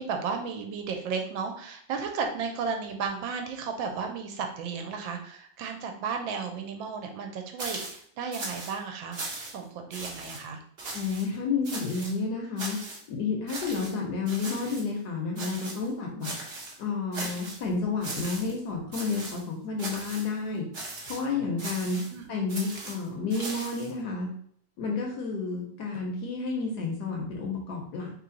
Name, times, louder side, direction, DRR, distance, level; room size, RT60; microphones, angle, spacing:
voice 1, 0.0-9.2 9.5-10.6 21.7-22.3, right 5 dB, 75° right, 4 dB, 1.3 m, -34 dB
sound 1, 7.6-8.0 8.3-8.8 9.1-9.6 9.9-10.4 10.8-11.3 11.6-12.1 12.6-13.0 13.5-13.9 14.3-14.9 15.4-15.9 16.2-16.8 17.1-17.6 18.0-18.6 18.9-19.4 19.8-20.3 20.7-21.2 21.6-22.1 22.5-23.9, right 2 dB, 50° right, 0.7 m, -38 dB
voice 2, 10.9-12.8 13.1-16.3 16.8-20.7 21.1-22.0 22.3-24.3 24.8-28.1, left 4 dB, 65° left, 0 dB, 1.1 m, -31 dB
3.2 x 3.1 x 3.7 m, 0.63 s
omnidirectional pair, 2.2 m